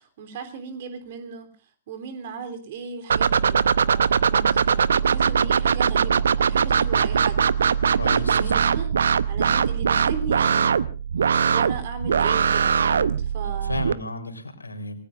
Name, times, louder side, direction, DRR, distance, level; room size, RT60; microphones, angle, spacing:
voice 1, 0.0-1.5 1.9-8.9 9.3-10.7 11.5-13.9, right 6 dB, 45° right, 8 dB, 3.4 m, -36 dB
sound 1, 3.1-13.9, right 7 dB, 65° right, 0.7 m, -21 dB
voice 2, 8.0-8.4 13.6-15.0, left 1 dB, 80° left, 6 dB, 3.9 m, -32 dB
28.0 x 20.0 x 2.6 m, 0.35 s
figure-of-eight pair, 115°, 0 cm